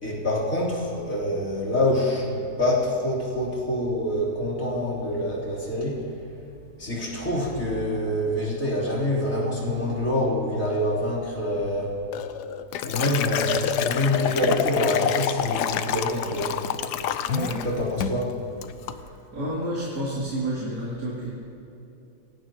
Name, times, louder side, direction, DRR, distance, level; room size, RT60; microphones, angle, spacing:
voice 1, 0.0-6.0 6.8-11.9 12.8-16.6 17.6-18.3, left 1 dB, 50° left, -6 dB, 4.1 m, -26 dB
Liquid, 12.1-17.7 18.0-18.3 18.6-19.0, left 9 dB, 80° left, 1.3 m, -27 dB
voice 2, 17.3-17.6 19.3-21.3, right 1 dB, 75° right, -7 dB, 3.4 m, -29 dB
24.5 x 18.0 x 3.0 m, 3.0 s
omnidirectional pair, 1.7 m